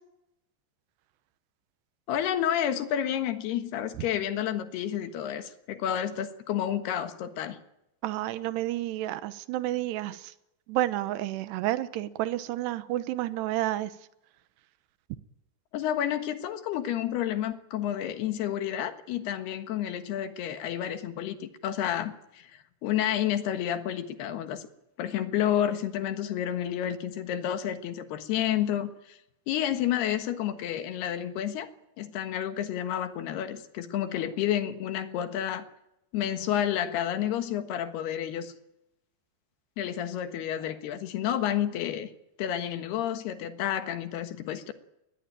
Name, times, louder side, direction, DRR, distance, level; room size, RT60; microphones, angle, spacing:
voice 1, 2.1-7.6 15.7-24.7 25.0-29.2 29.5-31.7 32.0-35.7 36.1-38.5 39.8-42.1 42.4-44.7, left 10 dB, 75° left, 3.4 m, -30 dB
voice 2, 8.0-10.3 10.7-13.9, right 15 dB, 80° right, 3.1 m, -30 dB
21.5 x 21.0 x 9.0 m
omnidirectional pair, 4.8 m